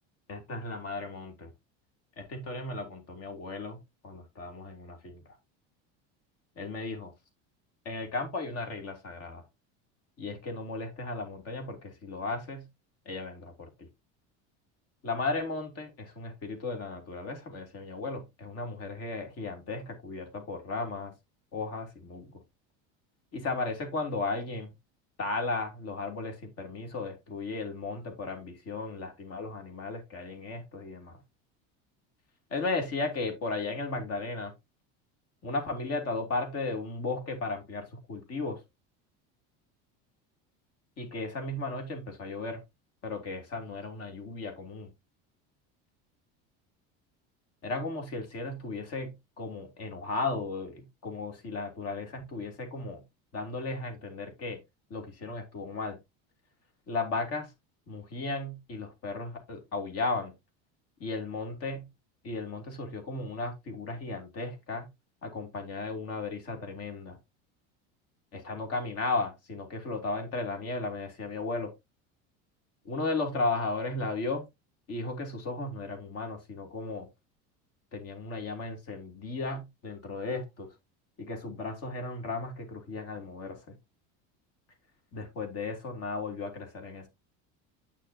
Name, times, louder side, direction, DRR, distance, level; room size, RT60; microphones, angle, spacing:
voice 1, 0.3-1.5 2.2-5.4 6.6-7.1 7.8-9.4 10.2-12.7 13.0-13.9 15.0-21.1 21.5-22.3 23.3-24.7 25.2-31.2 32.5-34.5 35.4-38.6 41.0-42.6 43.0-44.9 47.6-53.0 53.3-54.6 54.9-56.0 56.9-57.5 57.9-60.3 61.0-61.9 62.2-64.9 65.2-67.2 68.3-71.7 72.8-74.4 74.9-77.1 77.9-80.7 81.2-83.8 85.1-87.1, left 3 dB, 45° left, 3.1 m, -35 dB
8.7 x 6.6 x 2.8 m
cardioid pair, 140°, 34 cm